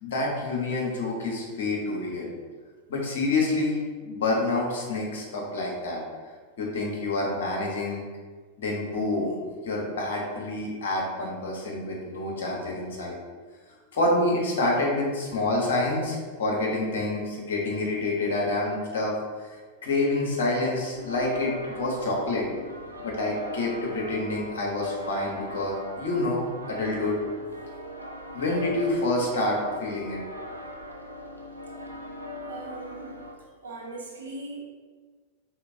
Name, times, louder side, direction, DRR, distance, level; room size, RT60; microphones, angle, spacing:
voice 1, 0.0-2.3 2.9-3.8 4.0-6.0 6.6-8.0 8.6-9.4 9.6-13.2 13.9-19.1 19.4-19.6 19.8-22.5 23.0-27.2 28.3-30.2, left 2 dB, 60° left, -2 dB, 1.1 m, -27 dB
sound 1, 20.9-33.3, left 1 dB, 90° left, 0.5 m, -39 dB
voice 2, 32.5-33.2 33.6-34.6, right 2 dB, 70° right, -1 dB, 0.9 m, -40 dB
4.9 x 3.6 x 2.7 m, 1.5 s
figure-of-eight pair, 90°, 0 cm